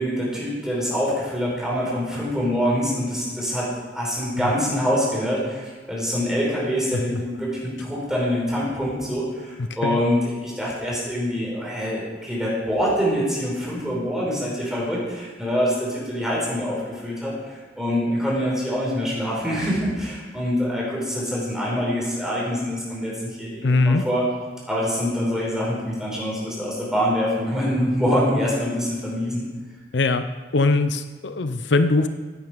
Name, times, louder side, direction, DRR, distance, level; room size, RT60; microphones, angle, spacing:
voice 1, 0.0-24.2 24.7-29.4, equal, 5° right, -5 dB, 4.9 m, -25 dB
voice 2, 23.6-24.1 29.9-30.2 30.5-32.1, left 3 dB, 75° left, 10 dB, 0.6 m, -20 dB
16.5 x 9.3 x 5.1 m, 1.4 s
head